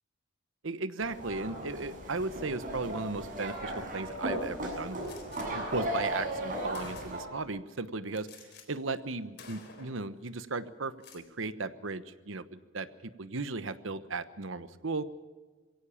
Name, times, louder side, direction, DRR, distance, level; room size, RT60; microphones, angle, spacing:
voice 1, 0.6-5.2 5.5-15.0, right 3 dB, 70° right, 13 dB, 1.1 m, -36 dB
sound 1, 1.0-7.2, right 1 dB, 45° right, 7.3 m, -36 dB
Gunshot gunfire, 5.0-5.5 6.3-6.4 6.7-7.4 8.1-8.7 8.9-9.1 9.4-10.1 10.9-11.2, left 5 dB, 60° left, 3.9 m, -51 dB
22.0 x 17.0 x 7.2 m, 1.3 s
head